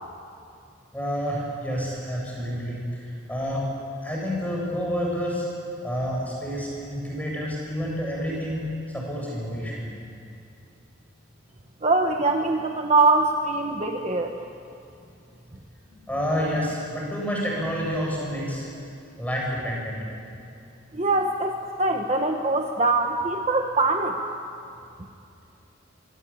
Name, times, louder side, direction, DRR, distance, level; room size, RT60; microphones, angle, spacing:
voice 1, 0.9-3.7 4.0-5.5 5.8-8.6 8.9-9.9 16.1-18.7 19.2-20.0, equal, 5° left, -3 dB, 7.6 m, -29 dB
voice 2, 11.8-14.3 20.9-24.2, right 3 dB, 30° right, 3 dB, 1.2 m, -23 dB
25.0 x 24.0 x 8.8 m, 2.6 s
head